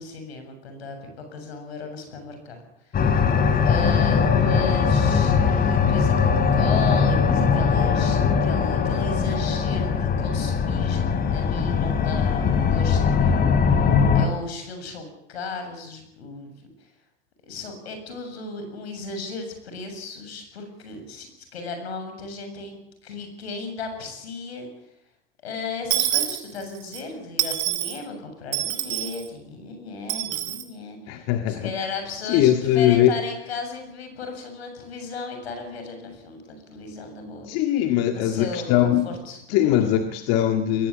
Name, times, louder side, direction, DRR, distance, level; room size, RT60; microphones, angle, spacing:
voice 1, 0.0-3.0 3.6-13.5 13.7-13.9 14.1-16.5 16.8-16.9 17.4-24.7 25.4-37.5 38.1-39.8, left 3 dB, 90° left, 6 dB, 7.4 m, -35 dB
sound 1, 2.9-14.3, left 6 dB, 30° left, 3.1 m, -20 dB
Dishes pots and pans / Coin (dropping), 25.9-27.0 27.4-28.0 28.5-29.2 30.1-30.6, right 15 dB, 60° right, 3.7 m, -26 dB
voice 2, 31.1-31.9 32.2-33.2 37.5-39.1 39.5-40.9, left 11 dB, 55° left, 6 dB, 1.9 m, -21 dB
21.5 x 16.5 x 8.6 m, 0.81 s
hypercardioid pair, 110°, 31 cm